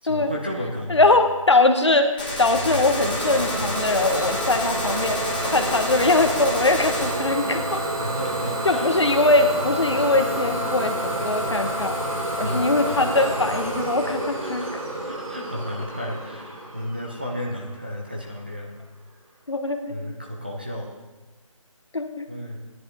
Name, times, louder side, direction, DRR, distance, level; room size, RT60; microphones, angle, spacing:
voice 1, 0.0-1.2 8.0-8.9 12.4-12.7 14.3-14.7 15.0-18.7 19.9-20.9 22.3-22.6, equal, 15° right, -2 dB, 0.7 m, -33 dB
voice 2, 0.9-5.2 5.5-7.8 8.6-11.9 12.4-14.8 19.5-20.0 21.9-22.3, left 2 dB, 55° left, 6 dB, 1.1 m, -21 dB
Gunshot gunfire, 2.2-7.2, left 2 dB, 15° left, 1.3 m, -30 dB
Idling / Domestic sounds home sounds, 2.5-18.1, right 1 dB, 90° right, 3.0 m, -29 dB
16.5 x 10.5 x 3.5 m, 1.1 s
figure-of-eight pair, 180°, 17 cm